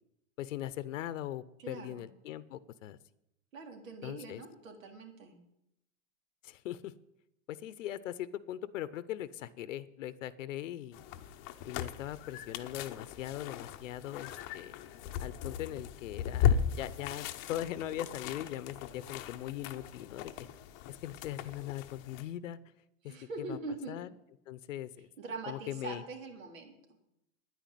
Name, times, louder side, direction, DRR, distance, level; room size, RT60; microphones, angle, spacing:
voice 1, 0.4-3.0 4.0-4.4 6.4-6.9 7.5-11.0 11.6-14.8 15.2-20.3 20.9-22.6 23.0-23.6 23.9-24.1 24.5-25.1 25.5-26.0, left 12 dB, 70° left, 16 dB, 0.8 m, -40 dB
voice 2, 1.6-2.1 3.5-5.3 23.0-24.0 25.2-26.7, right 3 dB, 85° right, 4 dB, 3.6 m, -43 dB
sound 1, 10.9-22.2, left 8 dB, 30° left, 0.7 m, -37 dB
10.0 x 9.4 x 9.1 m, 0.83 s
supercardioid pair, 150°, 39 cm